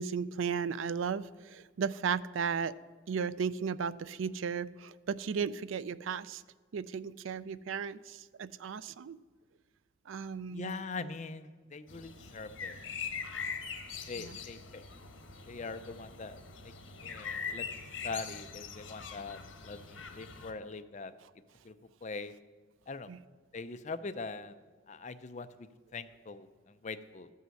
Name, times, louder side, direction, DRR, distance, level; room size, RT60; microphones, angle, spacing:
voice 1, 0.0-2.7 3.1-6.4 6.7-9.2 10.1-10.7 14.2-14.4 23.1-23.2, right 6 dB, 80° right, 17 dB, 0.4 m, -35 dB
voice 2, 10.5-12.9 14.1-14.8 15.5-16.4 16.6-16.7 17.0-21.1 21.6-21.7 22.0-22.3 22.9-23.1 23.5-24.5 24.9-27.3, left 4 dB, 35° left, 11 dB, 0.5 m, -42 dB
sound 1, 11.9-20.5, left 6 dB, 75° left, 1.2 m, -42 dB
13.5 x 5.6 x 7.6 m, 1.4 s
head